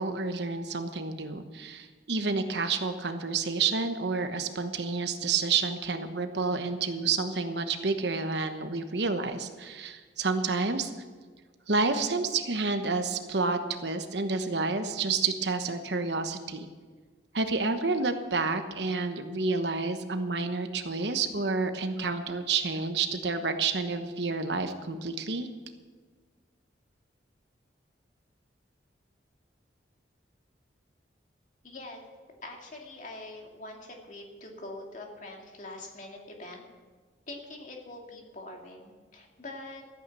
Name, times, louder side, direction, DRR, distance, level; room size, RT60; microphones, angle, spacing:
voice 1, 0.0-10.9 11.7-16.7 17.3-25.5, right 4 dB, 70° right, 8 dB, 1.1 m, -29 dB
voice 2, 31.6-32.0 32.4-36.7 37.3-39.8, left 2 dB, 40° left, 1 dB, 2.3 m, -44 dB
14.0 x 9.3 x 7.0 m, 1.5 s
head